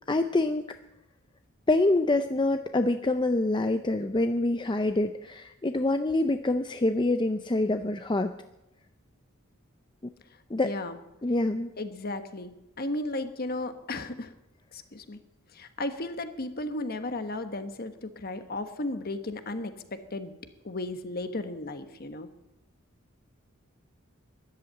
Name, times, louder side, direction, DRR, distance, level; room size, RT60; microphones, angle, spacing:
voice 1, 0.1-0.7 1.7-8.3 10.5-10.7 11.2-11.7, left 2 dB, 20° left, 8 dB, 0.5 m, -26 dB
voice 2, 10.6-11.0 11.8-12.5 12.8-14.3 14.7-15.2 15.5-20.3 20.6-22.3, left 2 dB, 45° left, 9 dB, 1.3 m, -34 dB
13.0 x 11.5 x 8.9 m, 0.92 s
head